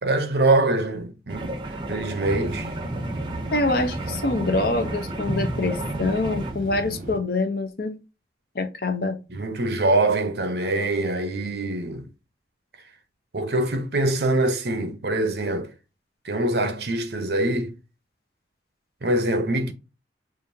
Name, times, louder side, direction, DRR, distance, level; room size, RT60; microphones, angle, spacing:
voice 1, 0.0-1.6 1.9-2.7 9.3-12.1 13.3-15.7 16.2-17.7 19.0-19.7, right 2 dB, 65° right, 0.7 m, -24 dB
sound 1, 1.3-6.5, right 1 dB, 25° right, 0.6 m, -32 dB
sound 2, 2.2-7.2, right 2 dB, 50° right, 1.5 m, -36 dB
voice 2, 3.5-8.0 8.5-9.2, left 2 dB, 55° left, 0.7 m, -25 dB
5.0 x 2.5 x 2.7 m
head